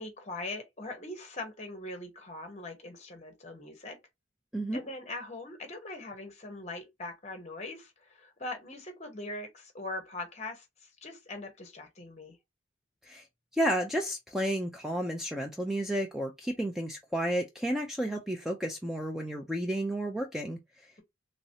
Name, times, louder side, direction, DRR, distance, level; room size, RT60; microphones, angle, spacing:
voice 1, 0.0-4.0 4.7-12.4, left 2 dB, 35° left, 0.9 m, -41 dB
voice 2, 13.5-20.6, right 1 dB, ahead, 0.4 m, -32 dB
3.1 x 2.9 x 2.7 m
head